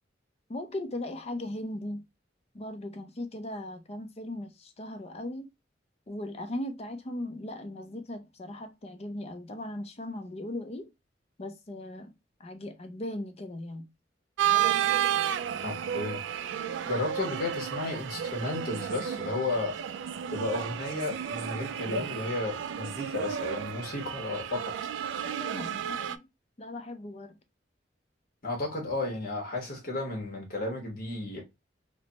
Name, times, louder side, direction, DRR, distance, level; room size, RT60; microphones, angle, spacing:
voice 1, 0.5-2.0 2.5-5.5 6.1-10.9 11.4-12.1 12.4-13.9 25.2-26.3 26.6-27.4, left 1 dB, 35° left, 0.6 m, -38 dB
sound 1, 14.4-26.2, right 9 dB, 80° right, 0.3 m, -32 dB
voice 2, 15.6-16.2 16.9-19.7 20.3-24.7 28.4-31.4, left 2 dB, 55° left, 1.0 m, -33 dB
3.2 x 2.1 x 3.7 m
head